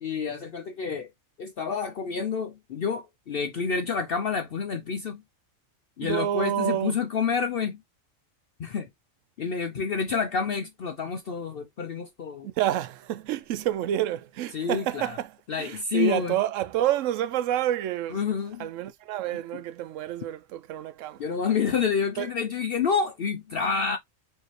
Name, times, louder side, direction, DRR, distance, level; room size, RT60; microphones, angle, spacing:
voice 1, 0.0-1.1 1.4-5.2 6.0-7.8 8.6-8.9 9.4-12.5 14.5-15.2 15.5-16.4 18.1-18.7 19.5-19.6 21.2-24.0, left 6 dB, 55° left, 0.7 m, -28 dB
voice 2, 6.0-6.9 12.4-15.3 15.6-18.2 18.6-21.2 22.2-22.3, right 12 dB, 75° right, 0.9 m, -28 dB
4.6 x 2.8 x 3.1 m
omnidirectional pair, 1.4 m